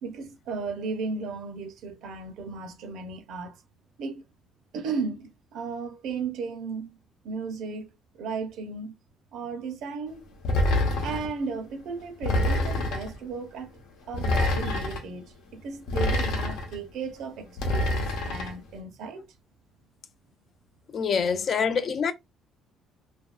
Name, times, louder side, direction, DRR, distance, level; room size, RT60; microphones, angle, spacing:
voice 1, 0.0-3.6 4.0-4.2 4.7-7.0 7.2-7.9 8.2-9.0 9.3-10.4 11.0-19.3, right 4 dB, 70° right, 0.8 m, -35 dB
sound 1, 10.4-11.3 12.2-13.1 14.1-15.0 15.9-16.8 17.6-18.5, left 1 dB, 85° left, 0.8 m, -26 dB
voice 2, 20.9-22.1, left 6 dB, 40° left, 0.4 m, -25 dB
2.7 x 2.5 x 2.3 m
cardioid pair, 145°, 0 cm